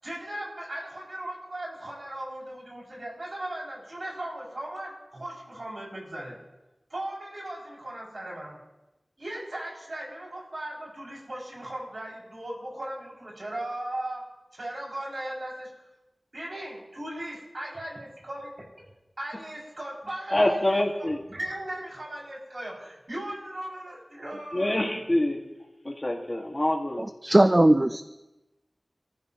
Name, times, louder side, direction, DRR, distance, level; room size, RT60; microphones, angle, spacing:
voice 1, 0.0-6.4 6.9-8.6 9.2-14.2 14.5-15.7 16.3-18.5 19.2-24.8, right 1 dB, 60° right, -4 dB, 7.1 m, -37 dB
voice 2, 20.3-21.2 24.5-25.4 25.8-27.0, left 1 dB, 30° left, 1 dB, 2.2 m, -25 dB
voice 3, 27.0-28.0, right 1 dB, 30° right, 9 dB, 0.6 m, -19 dB
27.5 x 14.5 x 3.2 m, 1.0 s
wide cardioid pair, 65°, 0 cm